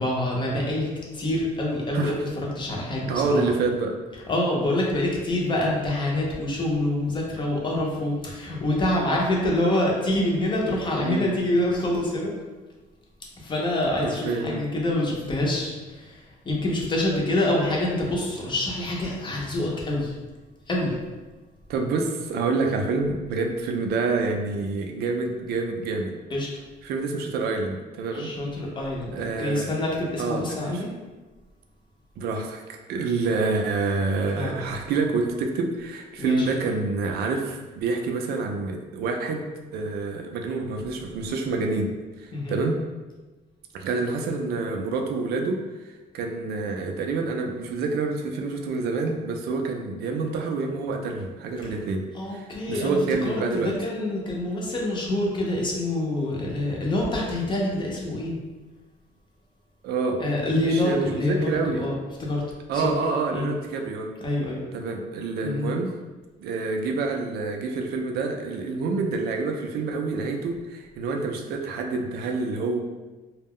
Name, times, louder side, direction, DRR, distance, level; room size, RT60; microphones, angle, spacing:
voice 1, 0.0-2.2 2.5-3.4 4.3-12.3 13.4-20.1 20.7-20.9 26.3-26.5 28.1-30.9 34.4-34.6 36.2-36.5 42.3-42.6 51.6-51.7 52.1-58.4 60.2-62.4 62.7-63.0 63.3-63.5 64.2-64.6 65.4-65.7, left 1 dB, 30° left, -2 dB, 0.6 m, -26 dB
voice 2, 3.1-3.9 11.0-11.2 14.0-14.6 21.7-26.2 26.8-28.3 29.1-29.7 30.2-30.8 32.2-39.5 39.7-42.8 43.7-53.7 59.8-60.2 60.6-61.9 62.7-64.1 64.7-65.9 66.4-72.8, right 3 dB, 70° right, 3 dB, 0.4 m, -27 dB
2.2 x 2.0 x 3.5 m, 1.2 s
cardioid pair, 110°, 17 cm